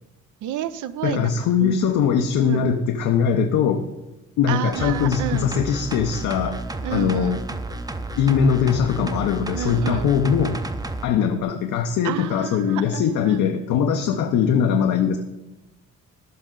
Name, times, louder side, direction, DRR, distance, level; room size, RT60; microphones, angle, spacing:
voice 1, 0.4-1.3 1.6-1.8 2.4-2.7 4.5-5.5 6.8-7.4 9.5-10.1 12.0-13.4 14.0-14.2, right 10 dB, 80° right, 14 dB, 0.6 m, -30 dB
voice 2, 1.0-3.8 4.4-6.6 6.9-7.4 8.2-10.6 11.0-15.2, left 7 dB, 85° left, 5 dB, 0.7 m, -21 dB
sound 1, 4.7-11.1 11.4-11.5, right 2 dB, 15° right, 0.5 m, -32 dB
13.5 x 5.3 x 3.8 m, 0.98 s
cardioid pair, 90°, 30 cm